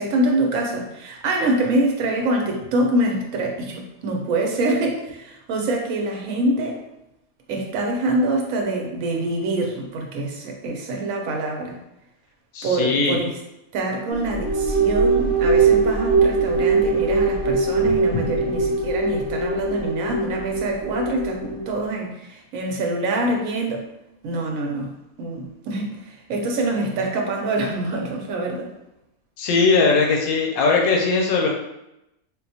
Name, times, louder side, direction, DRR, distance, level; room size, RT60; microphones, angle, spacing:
voice 1, 0.0-6.8 7.5-11.8 12.6-13.4 13.7-23.8 24.2-28.7, right 2 dB, 75° right, 1 dB, 1.1 m, -25 dB
voice 2, 12.5-13.2 18.1-18.2 29.4-31.5, left 4 dB, 80° left, 0 dB, 1.1 m, -19 dB
sound 1, 14.1-21.7, right 4 dB, 10° left, 0.4 m, -21 dB
4.0 x 2.2 x 2.7 m, 0.87 s
omnidirectional pair, 1.5 m